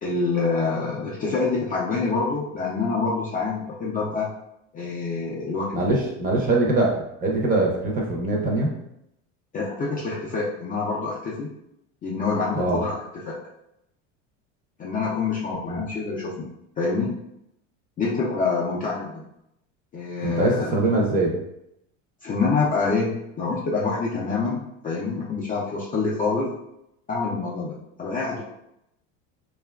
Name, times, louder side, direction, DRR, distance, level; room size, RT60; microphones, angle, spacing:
voice 1, 0.0-4.3 4.7-5.9 9.5-11.5 12.0-12.9 13.2-13.4 14.8-16.5 16.8-17.2 18.0-19.3 19.9-20.7 22.2-26.5 27.1-28.4, left 4 dB, 25° left, -5 dB, 0.4 m, -26 dB
voice 2, 5.7-8.7 12.5-12.8 15.7-15.8 20.2-21.4, right 2 dB, 25° right, -1 dB, 0.6 m, -23 dB
2.7 x 2.4 x 2.2 m, 0.82 s
supercardioid pair, 105°, 38 cm